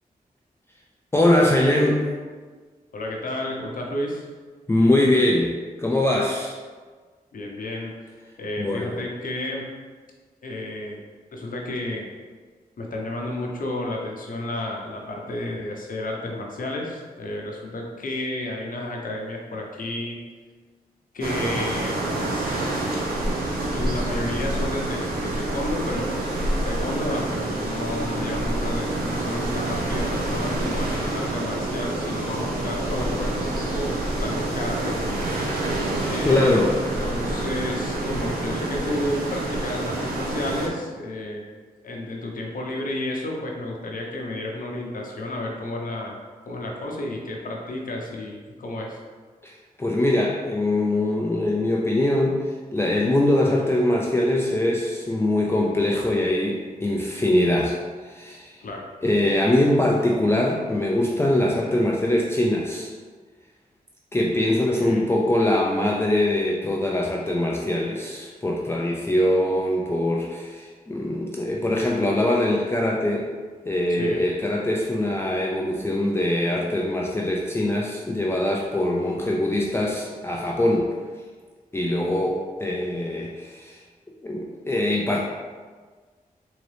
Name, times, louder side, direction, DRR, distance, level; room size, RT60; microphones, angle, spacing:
voice 1, 1.1-2.1 4.7-6.5 8.6-9.0 36.2-36.7 49.4-49.5 49.8-57.8 58.0-58.6 59.0-62.9 64.1-73.3 73.7-80.9 81.7-83.8 84.2-85.2, left 1 dB, 15° left, -2 dB, 0.4 m, -22 dB
voice 2, 2.9-4.2 7.3-7.9 8.4-9.6 10.4-11.0 11.3-12.1 12.8-20.2 21.1-22.9 23.7-26.2 26.6-33.9 34.2-35.0 36.1-36.7 37.0-41.4 41.8-46.2 46.5-49.0 53.6-53.7 58.6-58.8 64.6-65.1 74.0-74.2, left 1 dB, 65° left, 0 dB, 0.8 m, -31 dB
sound 1, 21.2-40.7, right 2 dB, 85° right, 0.6 m, -27 dB
3.8 x 2.8 x 3.3 m, 1.5 s
cardioid pair, 60°, 15 cm